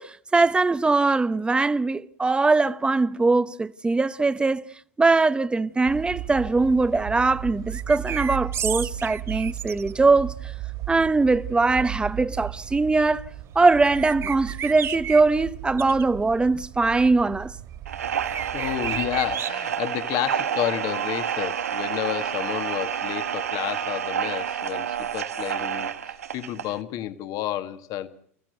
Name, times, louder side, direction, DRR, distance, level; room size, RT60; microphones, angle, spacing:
voice 1, 0.0-4.6 5.0-10.3 10.9-13.3 13.5-17.5, right 3 dB, 10° right, 1.0 m, -21 dB
sound 1, 5.9-19.4, right 13 dB, 50° right, 3.1 m, -36 dB
sound 2, 7.7-9.9 13.8-15.2 15.8-16.0 18.1-19.5, right 9 dB, 35° right, 1.1 m, -32 dB
sound 3, 17.9-26.8, right 8 dB, 90° right, 1.6 m, -29 dB
voice 2, 18.5-28.1, left 12 dB, 50° left, 1.8 m, -30 dB
29.5 x 15.0 x 8.0 m
hypercardioid pair, 95°, 8 cm